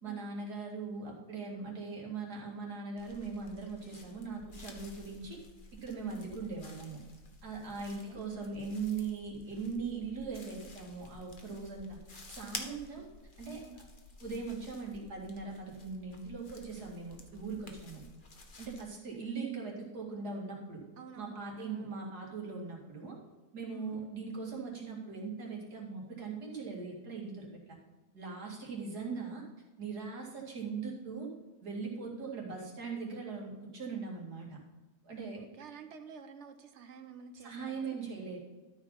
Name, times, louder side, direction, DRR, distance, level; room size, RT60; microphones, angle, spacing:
voice 1, 0.0-5.4 5.8-7.0 7.4-13.1 13.4-13.7 14.2-18.0 18.6-20.8 21.2-23.2 23.5-27.8 28.1-29.4 29.8-31.3 31.6-34.6 35.0-35.4 37.4-38.4, right 4 dB, 85° right, -2 dB, 2.8 m, -40 dB
sound 1, 3.0-18.9, left 3 dB, 35° left, 1.1 m, -51 dB
voice 2, 7.8-8.3 12.7-13.1 13.6-13.8 21.0-22.0 23.7-24.0 35.4-38.0, right 6 dB, 55° right, 9 dB, 1.0 m, -51 dB
13.0 x 4.8 x 5.6 m, 1.2 s
omnidirectional pair, 1.7 m